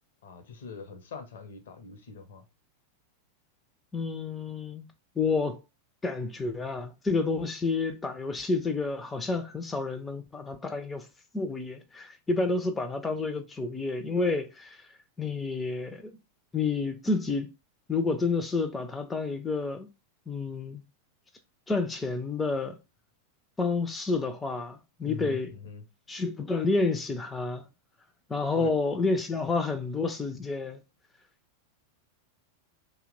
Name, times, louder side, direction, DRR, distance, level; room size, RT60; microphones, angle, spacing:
voice 1, 0.2-2.4 25.0-25.8 28.5-28.7, left 5 dB, 60° left, 0.7 m, -42 dB
voice 2, 3.9-4.9 5.2-5.6 6.0-11.1 11.3-14.8 15.2-16.1 16.5-17.5 17.9-19.9 20.3-20.8 21.7-22.8 23.6-25.5 26.1-27.6 28.3-30.8, left 3 dB, 15° left, 0.4 m, -29 dB
2.8 x 2.1 x 3.7 m
figure-of-eight pair, 90°, 0 cm